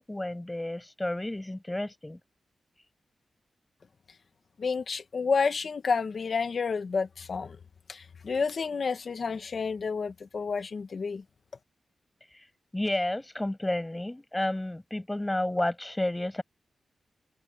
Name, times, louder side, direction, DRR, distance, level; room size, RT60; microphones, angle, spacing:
voice 1, 0.0-2.2 12.7-16.4, left 1 dB, 10° left, 6.9 m, -31 dB
voice 2, 4.6-7.6 7.9-11.2, left 5 dB, 45° left, 1.4 m, -30 dB
wide cardioid pair, 180°, 0 cm